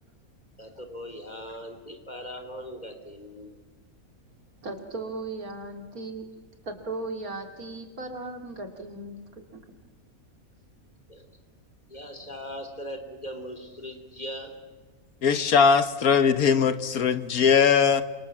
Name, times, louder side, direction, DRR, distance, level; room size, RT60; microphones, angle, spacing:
voice 1, 0.6-3.5 11.1-11.3 11.9-14.6, equal, 30° left, 5 dB, 3.4 m, -39 dB
voice 2, 4.6-6.3 6.6-9.2 9.5-9.6, right 2 dB, 80° right, 5 dB, 3.4 m, -36 dB
voice 3, 15.2-18.0, left 6 dB, 80° left, 12 dB, 1.6 m, -20 dB
29.0 x 26.0 x 7.4 m, 1.3 s
omnidirectional pair, 1.5 m